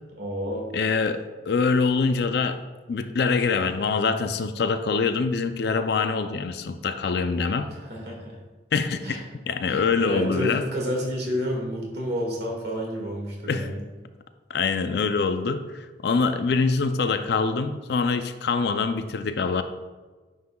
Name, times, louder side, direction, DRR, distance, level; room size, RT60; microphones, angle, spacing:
voice 1, 0.2-0.7 7.7-8.4 9.0-9.2 9.7-13.8, equal, 60° right, -2 dB, 1.8 m, -30 dB
voice 2, 0.7-2.6 2.9-7.7 8.7-10.6 13.5-13.7 14.5-19.6, left 4 dB, 60° left, 9 dB, 0.4 m, -24 dB
9.5 x 5.6 x 2.3 m, 1.3 s
head